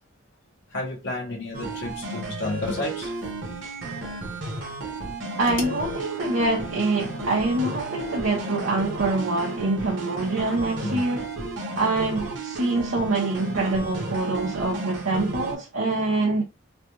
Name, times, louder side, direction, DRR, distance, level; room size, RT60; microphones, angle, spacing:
voice 1, 0.7-3.2 5.6-5.8 10.8-11.0, left 2 dB, 60° left, 0.9 m, -31 dB
sound 1, 1.5-15.5, right 2 dB, 65° right, 1.0 m, -34 dB
voice 2, 5.4-11.3 11.7-16.4, right 2 dB, 85° right, 0.9 m, -25 dB
3.2 x 2.2 x 3.0 m
head